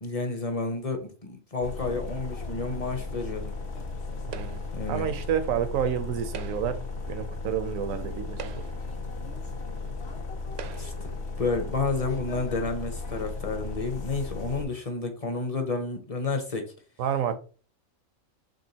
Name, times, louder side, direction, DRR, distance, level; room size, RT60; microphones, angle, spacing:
voice 1, 0.0-3.5 4.7-5.1 10.8-16.7, left 3 dB, 35° left, 0.7 m, -30 dB
sound 1, 1.6-14.7, left 3 dB, 55° left, 1.0 m, -36 dB
sound 2, 4.3-4.8 6.2-6.9 7.7-7.8 8.3-9.0 9.8-9.9 10.5-11.1, right 8 dB, 65° right, 0.7 m, -42 dB
voice 2, 4.3-4.6 4.9-6.8 7.1-8.6 17.0-17.3, right 8 dB, 80° right, 1.1 m, -29 dB
5.2 x 3.5 x 2.8 m
omnidirectional pair, 1.4 m